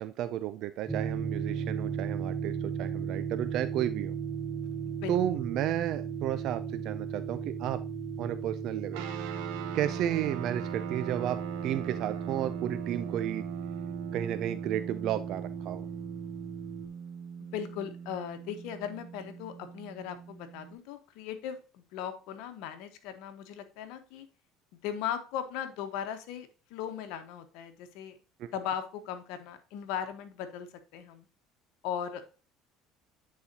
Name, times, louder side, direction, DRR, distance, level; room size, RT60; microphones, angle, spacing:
voice 1, 0.0-4.2 5.1-7.8 8.2-9.0 9.7-13.5 14.1-15.9 28.4-28.5, right 11 dB, 60° right, 11 dB, 0.4 m, -33 dB
sound 1, 0.9-16.9, right 6 dB, 15° right, 0.7 m, -37 dB
sound 2, 8.9-20.7, right 7 dB, 80° right, 1.2 m, -40 dB
voice 2, 17.4-24.3 24.7-28.1 28.5-30.7 30.9-31.3 31.8-32.2, left 9 dB, 75° left, 8 dB, 1.1 m, -38 dB
9.5 x 4.1 x 2.8 m, 0.35 s
cardioid pair, 115°, 0 cm